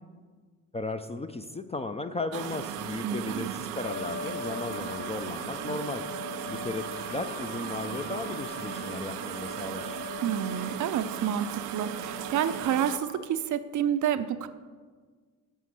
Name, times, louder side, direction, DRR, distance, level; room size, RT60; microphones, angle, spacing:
voice 1, 0.7-6.1 6.5-10.0, left 3 dB, 15° left, 8 dB, 0.5 m, -35 dB
sound 1, 2.3-13.0, right 11 dB, 85° right, 0.5 m, -37 dB
voice 2, 3.0-3.5 10.2-14.5, right 9 dB, 40° right, 12 dB, 0.6 m, -29 dB
sound 2, 3.8-13.3, left 7 dB, 70° left, 0.6 m, -42 dB
9.1 x 5.8 x 6.3 m, 1.5 s
figure-of-eight pair, 50°, 45 cm